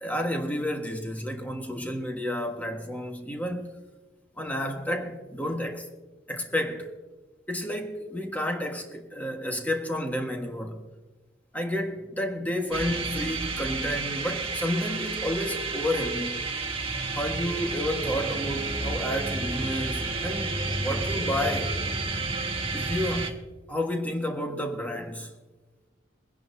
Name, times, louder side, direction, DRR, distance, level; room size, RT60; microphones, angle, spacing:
voice 1, 0.0-3.7 4.4-5.8 6.3-6.9 7.5-10.8 11.5-16.4 17.1-21.7 22.7-23.4 23.7-25.3, equal, 10° left, 1.5 m, -31 dB
sound 1, 12.7-23.3, right 3 dB, 30° right, 1.5 m, -31 dB
23.5 x 10.5 x 2.7 m
head